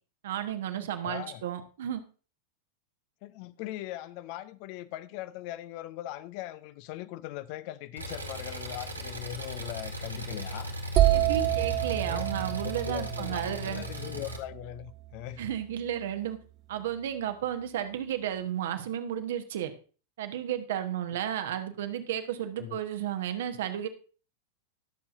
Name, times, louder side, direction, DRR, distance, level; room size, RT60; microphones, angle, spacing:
voice 1, 0.2-2.0 11.1-13.8 15.4-16.4 16.7-19.7 20.2-23.9, right 10 dB, 55° right, 1.1 m, -33 dB
voice 2, 1.0-1.4 3.2-10.8 12.0-15.4 21.1-21.2 22.6-22.8, left 14 dB, 45° left, 0.6 m, -40 dB
Engine, 8.0-14.4, equal, 85° right, 1.6 m, -38 dB
sound 1, 11.0-14.7, right 15 dB, 35° right, 0.5 m, -28 dB
20.0 x 7.1 x 2.6 m
figure-of-eight pair, 90°, 0 cm